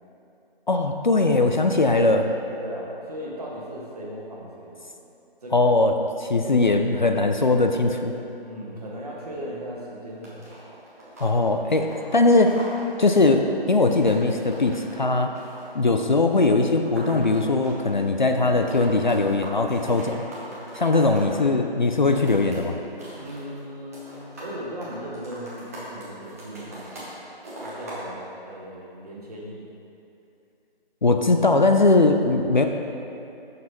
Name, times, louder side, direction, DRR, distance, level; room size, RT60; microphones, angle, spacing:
voice 1, 0.7-2.3 5.5-8.1 11.2-12.6 13.0-15.3 15.7-20.2 20.8-22.8 31.0-32.7, left 3 dB, 50° left, 5 dB, 0.4 m, -20 dB
voice 2, 1.2-1.8 2.6-4.8 5.4-5.8 6.4-6.8 8.4-10.7 23.2-27.2 27.5-29.7, equal, 40° right, -4 dB, 1.5 m, -37 dB
sound 1, 10.2-18.1 18.3-21.3 21.9-22.6 22.8-23.6 23.9-24.5 24.8-27.1 27.4-28.0, right 1 dB, 15° right, 0.9 m, -41 dB
8.8 x 6.6 x 2.9 m, 2.8 s
figure-of-eight pair, 155°, 30 cm